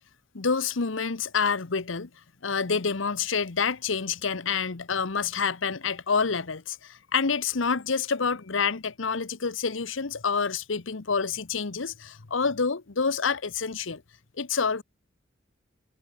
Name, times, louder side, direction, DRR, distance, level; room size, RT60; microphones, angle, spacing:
voice 1, 0.3-2.1 2.4-14.0 14.4-14.8, left 5 dB, 80° left, 1.0 m, -28 dB
head